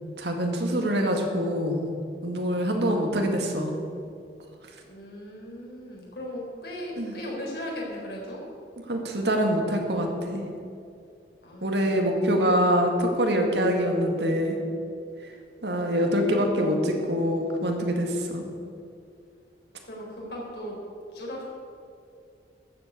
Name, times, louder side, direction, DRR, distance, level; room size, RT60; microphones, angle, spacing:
voice 1, 0.2-1.9 2.2-3.8 7.0-7.1 8.9-10.5 11.6-14.6 15.6-18.5, equal, 80° right, 3 dB, 2.0 m, -25 dB
voice 2, 4.8-8.4 11.4-12.5 15.7-16.9 19.8-20.8 21.1-21.4, equal, 65° left, -3 dB, 4.3 m, -38 dB
13.5 x 8.0 x 8.5 m, 2.5 s
head